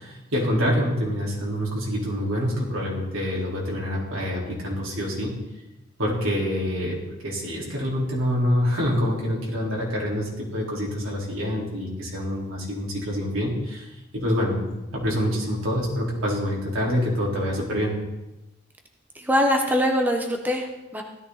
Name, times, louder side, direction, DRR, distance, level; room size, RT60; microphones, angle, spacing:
voice 1, 0.0-5.3 6.0-13.9 14.1-14.6 14.9-17.9, equal, 90° right, -3 dB, 4.5 m, -26 dB
voice 2, 19.1-21.0, equal, 10° right, 3 dB, 1.1 m, -23 dB
16.0 x 13.5 x 4.2 m, 1.0 s
head